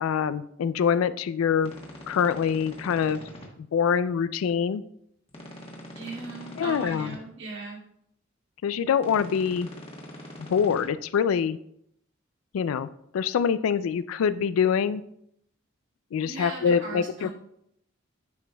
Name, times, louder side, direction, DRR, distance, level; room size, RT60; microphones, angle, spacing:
voice 1, 0.0-1.7 2.1-3.2 3.7-4.8 6.6-7.1 8.6-9.7 10.4-11.6 12.5-12.9 13.1-15.0 16.1-17.3, left 7 dB, 85° left, 15 dB, 0.3 m, -25 dB
sound 1, 1.6-3.5 5.3-7.2 9.0-10.8, left 1 dB, 25° left, 1.1 m, -43 dB
voice 2, 5.9-7.8 16.2-17.3, right 3 dB, 60° right, -4 dB, 2.1 m, -38 dB
9.4 x 5.1 x 2.2 m, 0.73 s
head